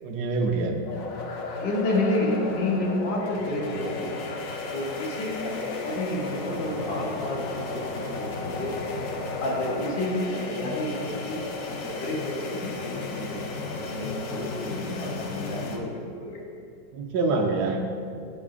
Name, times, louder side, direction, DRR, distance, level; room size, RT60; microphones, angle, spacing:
voice 1, 0.0-0.8 16.9-18.0, right 3 dB, 70° right, 3 dB, 1.1 m, -26 dB
sound 1, 0.9-15.8, left 3 dB, 65° left, 0.9 m, -34 dB
voice 2, 1.6-4.2 4.7-8.7 9.4-13.4 13.8-16.4, left 1 dB, 85° left, -2 dB, 1.7 m, -30 dB
7.4 x 5.0 x 3.6 m, 2.4 s
omnidirectional pair, 1.9 m